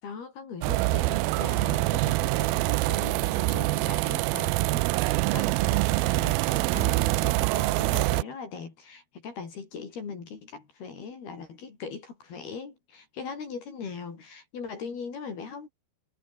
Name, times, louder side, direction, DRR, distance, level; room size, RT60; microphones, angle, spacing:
voice 1, 0.0-15.7, left 5 dB, 65° left, 6.8 m, -40 dB
sound 1, 0.6-8.2, right 22 dB, 85° right, 2.1 m, -25 dB
omnidirectional pair, 4.8 m